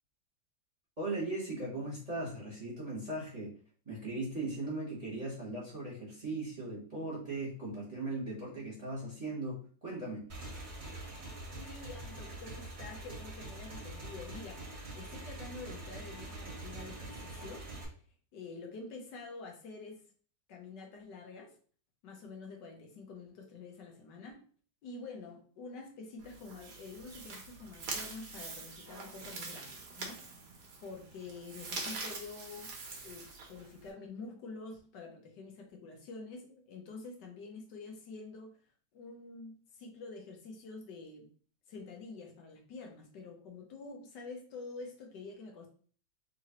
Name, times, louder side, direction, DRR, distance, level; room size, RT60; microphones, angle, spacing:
voice 1, 1.0-3.5 3.8-10.2, right 2 dB, 25° right, -6 dB, 1.1 m, -38 dB
Motorcycle / Engine, 10.3-17.8, right 2 dB, 45° right, 1.2 m, -44 dB
voice 2, 11.6-17.9 18.3-20.0 20.5-21.5 22.0-24.4 24.8-30.3 30.8-32.7 33.0-38.6 38.9-41.3 41.7-45.7, left 3 dB, 75° left, 1 dB, 1.4 m, -47 dB
sound 1, 26.2-33.9, right 3 dB, 70° right, 1.4 m, -44 dB
3.8 x 3.0 x 2.8 m, 0.43 s
omnidirectional pair, 1.9 m